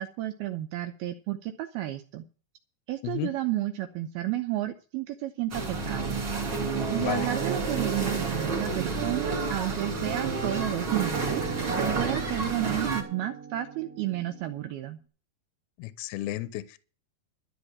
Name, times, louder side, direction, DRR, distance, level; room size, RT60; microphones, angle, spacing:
voice 1, 0.0-2.2 2.9-6.2 6.9-15.0, right 14 dB, 75° right, 2.3 m, -32 dB
sound 1, 5.5-13.0, right 4 dB, 35° right, 2.8 m, -30 dB
Guitar, 6.5-14.7, right 5 dB, 50° right, 1.1 m, -37 dB
voice 2, 7.0-7.3 15.8-16.8, left 16 dB, 75° left, 2.4 m, -33 dB
13.0 x 6.2 x 8.6 m
omnidirectional pair, 5.2 m